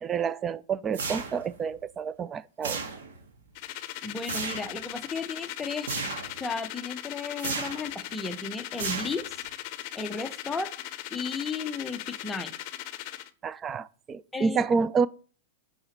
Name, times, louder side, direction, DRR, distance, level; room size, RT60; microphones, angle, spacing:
voice 1, 0.0-2.8 13.4-15.1, right 5 dB, 20° right, 0.4 m, -28 dB
sound 1, 0.9-1.6 2.6-3.3 4.2-4.8 5.9-6.4 7.4-7.9 8.8-9.5, right 4 dB, 80° right, 1.7 m, -34 dB
sound 2, 3.5-13.3, left 14 dB, 45° left, 0.7 m, -39 dB
voice 2, 4.0-5.9 6.4-9.4 9.9-10.7 11.1-12.5 14.3-14.6, left 4 dB, 10° left, 0.7 m, -34 dB
7.0 x 5.0 x 6.6 m
hypercardioid pair, 140°, 0 cm